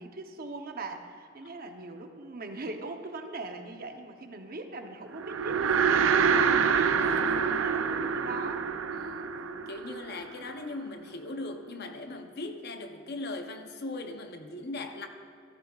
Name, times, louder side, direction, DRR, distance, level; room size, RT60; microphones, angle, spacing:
voice 1, 0.0-6.3 7.2-8.7, right 3 dB, 50° right, 5 dB, 0.8 m, -40 dB
sound 1, 5.2-10.6, right 6 dB, 75° right, 0.5 m, -26 dB
voice 2, 6.7-7.4 8.9-9.3 9.7-15.1, left 2 dB, 55° left, 6 dB, 0.7 m, -39 dB
14.5 x 13.0 x 2.4 m, 2.5 s
head